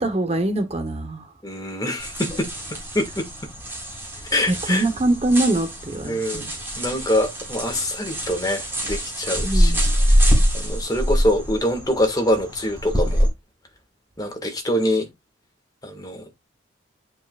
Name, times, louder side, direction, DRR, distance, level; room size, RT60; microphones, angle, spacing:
voice 1, 0.0-1.3 4.5-6.5 9.4-9.8, right 2 dB, 30° right, 1.0 m, -23 dB
voice 2, 1.4-3.5 4.3-4.9 6.0-6.4 6.8-9.8 10.1-10.3 10.5-13.3 14.2-15.1 15.8-16.3, left 1 dB, 20° left, 1.8 m, -25 dB
sound 1, 2.0-13.3, equal, 10° right, 4.6 m, -24 dB
11.5 x 5.0 x 2.4 m
head